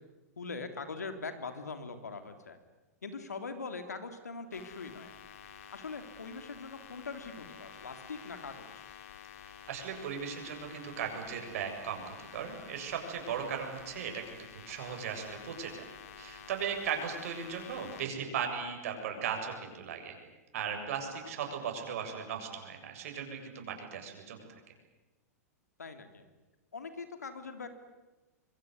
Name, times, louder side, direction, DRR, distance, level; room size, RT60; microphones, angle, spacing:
voice 1, 0.4-2.6 3.0-5.1 5.7-8.8 14.9-15.0 25.8-26.2 26.7-27.7, left 4 dB, 85° left, 8 dB, 3.3 m, -42 dB
sound 1, 4.5-18.0, left 8 dB, 55° left, 3.2 m, -50 dB
voice 2, 9.7-15.8 16.2-20.2 20.5-24.6, right 7 dB, 60° right, 4 dB, 7.4 m, -37 dB
25.5 x 23.5 x 9.8 m, 1.1 s
hypercardioid pair, 110°, 9 cm